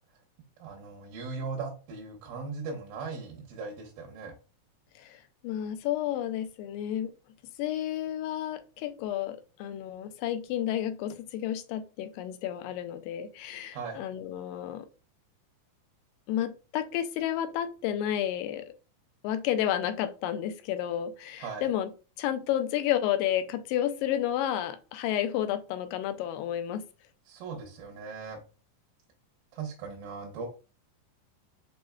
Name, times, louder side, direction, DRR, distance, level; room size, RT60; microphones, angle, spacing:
voice 1, 0.6-4.3 13.7-14.0 21.4-21.7 27.3-28.4 29.5-30.5, right 4 dB, 85° right, 0 dB, 2.7 m, -38 dB
voice 2, 5.4-7.1 7.6-14.9 16.3-18.7 19.2-21.9 22.2-26.9, left 11 dB, 85° left, 9 dB, 2.2 m, -31 dB
6.7 x 3.1 x 2.2 m, 0.33 s
omnidirectional pair, 3.9 m